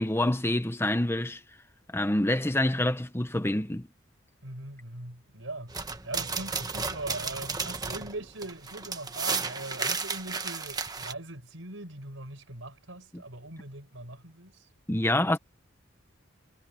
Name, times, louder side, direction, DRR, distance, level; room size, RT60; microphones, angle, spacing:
voice 1, 0.0-1.4 1.9-3.9 13.1-13.2 14.9-15.4, left 1 dB, 10° left, 1.0 m, -27 dB
voice 2, 4.4-5.8 6.0-14.7, right 2 dB, 75° right, 5.5 m, -41 dB
sound 1, 5.7-11.1, right 4 dB, 20° right, 1.4 m, -33 dB
head